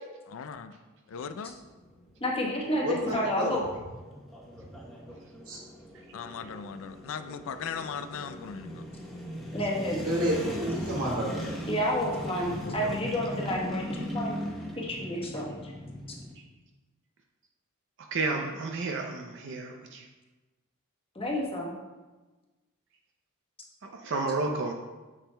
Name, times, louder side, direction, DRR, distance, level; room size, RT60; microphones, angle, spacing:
voice 1, 0.3-0.8 1.1-1.6 6.1-8.8 12.6-13.1, left 6 dB, 60° left, 10 dB, 0.4 m, -38 dB
sound 1, 1.1-16.3, equal, ahead, 0.9 m, -40 dB
voice 2, 2.2-3.6 9.5-10.0 11.7-14.4 14.8-15.7 16.1-16.2 21.1-21.7, equal, 25° left, -3 dB, 1.1 m, -30 dB
voice 3, 2.8-3.6 5.5-5.6 10.0-11.6, equal, 80° right, -4 dB, 1.9 m, -30 dB
voice 4, 18.1-20.0 23.8-24.7, right 3 dB, 55° right, 2 dB, 0.5 m, -31 dB
7.2 x 7.1 x 2.2 m, 1.2 s
head